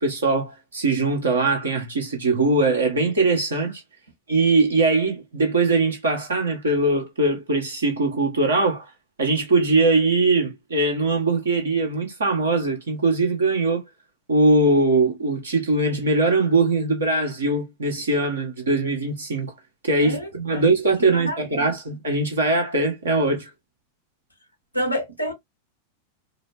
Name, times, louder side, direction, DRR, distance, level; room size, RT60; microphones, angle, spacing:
voice 1, 0.0-3.8 4.3-8.9 9.2-13.8 14.3-19.5 19.8-23.5, right 2 dB, 70° right, 1.6 m, -21 dB
voice 2, 20.0-20.6 21.1-21.7 24.7-25.3, equal, 90° left, 1.1 m, -29 dB
4.9 x 2.1 x 2.7 m
figure-of-eight pair, 90°, 0 cm